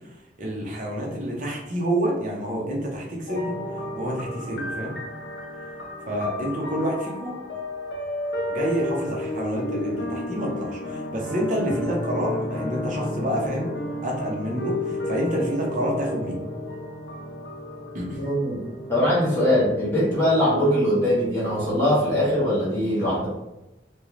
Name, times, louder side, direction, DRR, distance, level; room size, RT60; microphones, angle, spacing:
voice 1, 0.4-3.6 4.0-4.9 6.1-7.4 8.5-13.7 14.0-16.4 17.9-18.3, equal, 45° right, -2 dB, 0.7 m, -28 dB
sound 1, 3.3-22.2, left 1 dB, 75° left, 0.6 m, -33 dB
voice 2, 18.2-18.6 18.9-23.3, equal, 15° left, -9 dB, 0.9 m, -21 dB
2.5 x 2.3 x 3.0 m, 0.97 s
head